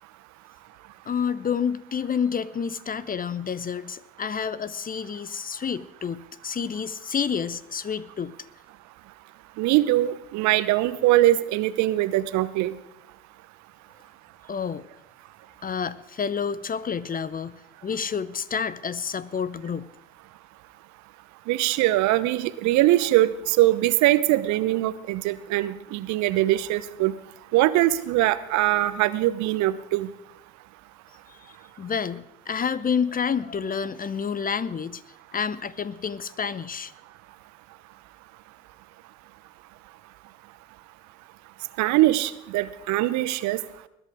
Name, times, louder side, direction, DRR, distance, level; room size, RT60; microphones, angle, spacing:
voice 1, 1.1-8.4 14.5-14.9 15.6-19.9 31.3-35.0 35.3-36.9, left 6 dB, 25° left, 18 dB, 0.7 m, -29 dB
voice 2, 9.6-12.8 21.5-27.1 27.5-30.1 41.8-43.6, right 15 dB, 60° right, 16 dB, 0.9 m, -22 dB
21.0 x 11.0 x 4.9 m, 0.79 s
figure-of-eight pair, 55°, 32 cm